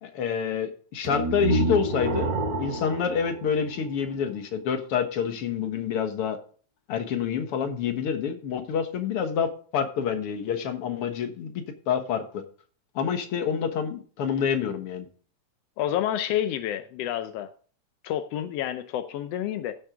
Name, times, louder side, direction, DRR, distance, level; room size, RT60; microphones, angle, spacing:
voice 1, 0.0-6.4 6.9-12.4 13.0-15.1, left 7 dB, 55° left, 1.9 m, -28 dB
sound 1, 1.0-4.2, right 1 dB, 70° right, 3.3 m, -28 dB
voice 2, 15.8-17.5 18.0-19.7, left 11 dB, 80° left, 1.4 m, -29 dB
15.5 x 6.5 x 3.6 m
omnidirectional pair, 3.6 m